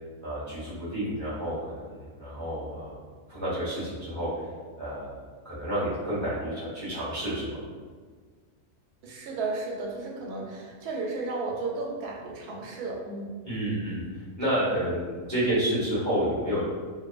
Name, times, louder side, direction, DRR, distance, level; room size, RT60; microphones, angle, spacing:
voice 1, 0.2-3.0 3.3-4.5 4.8-5.2 5.4-7.6 13.4-14.0 14.4-16.6, right 1 dB, 15° left, -11 dB, 0.7 m, -30 dB
voice 2, 9.0-13.3, right 3 dB, 85° right, -1 dB, 1.1 m, -33 dB
2.6 x 2.4 x 2.3 m, 1.5 s
omnidirectional pair, 1.6 m